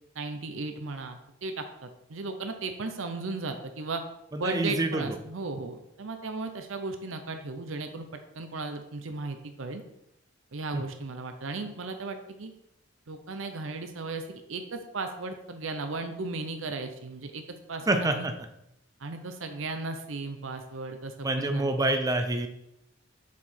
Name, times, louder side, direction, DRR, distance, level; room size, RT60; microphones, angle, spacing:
voice 1, 0.1-4.0 4.4-8.1 8.3-9.8 10.5-12.5 13.1-17.4 17.7-18.3 19.0-21.7, right 3 dB, 80° right, 6 dB, 0.7 m, -36 dB
voice 2, 4.3-5.1 10.7-10.8 17.9-18.3 21.2-22.5, right 2 dB, 20° right, 6 dB, 0.5 m, -27 dB
7.0 x 4.7 x 4.4 m, 0.81 s
head